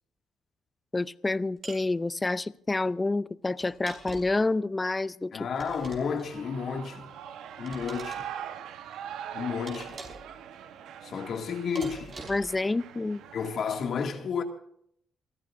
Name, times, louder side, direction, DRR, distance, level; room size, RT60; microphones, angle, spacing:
voice 1, 0.9-5.5 12.3-13.2, left 2 dB, 20° left, 0.5 m, -28 dB
sound 1, 1.6-1.9 3.6-4.4 5.6-6.3 7.7-8.2 9.7-10.3 11.8-12.6, right 3 dB, 40° right, 5.3 m, -43 dB
voice 2, 5.3-7.1 7.6-8.3 9.3-10.0 11.0-12.2 13.3-14.4, left 6 dB, 60° left, 2.2 m, -32 dB
Shout / Cheering, 6.0-13.7, right 9 dB, 80° right, 1.1 m, -42 dB
28.5 x 14.0 x 2.6 m
cardioid pair, 90°, 0 cm